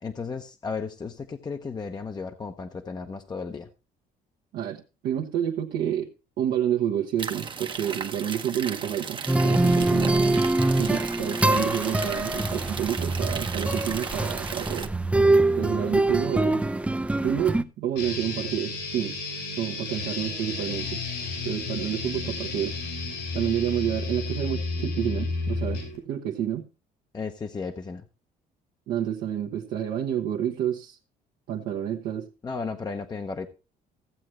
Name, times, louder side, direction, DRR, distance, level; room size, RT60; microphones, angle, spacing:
voice 1, 0.0-3.7 27.1-28.0 32.4-33.5, left 4 dB, 25° left, 6 dB, 0.8 m, -34 dB
voice 2, 4.5-6.1 6.4-10.4 10.8-14.9 15.6-16.6 17.2-19.2 19.6-21.0 21.4-22.8 23.3-25.8 26.0-26.7 28.9-31.0 31.5-32.3, right 10 dB, 75° right, -1 dB, 1.1 m, -29 dB
sound 1, 7.2-14.9, right 5 dB, 30° right, 0.8 m, -36 dB
sound 2, 9.3-17.6, right 2 dB, 5° right, 0.5 m, -24 dB
sound 3, 18.0-26.0, left 3 dB, 80° left, 5.3 m, -32 dB
15.5 x 7.6 x 3.1 m, 0.30 s
cardioid pair, 110°, 17 cm